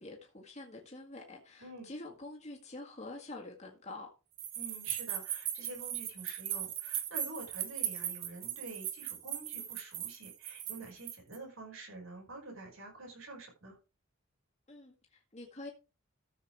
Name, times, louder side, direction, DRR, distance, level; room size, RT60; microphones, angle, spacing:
voice 1, 0.0-4.1 14.7-15.7, left 2 dB, 35° left, 1.8 m, -47 dB
sound 1, 4.4-11.4, right 11 dB, 65° right, 1.6 m, -38 dB
voice 2, 4.5-13.8, right 2 dB, 85° right, 5.7 m, -47 dB
13.5 x 7.2 x 3.5 m
head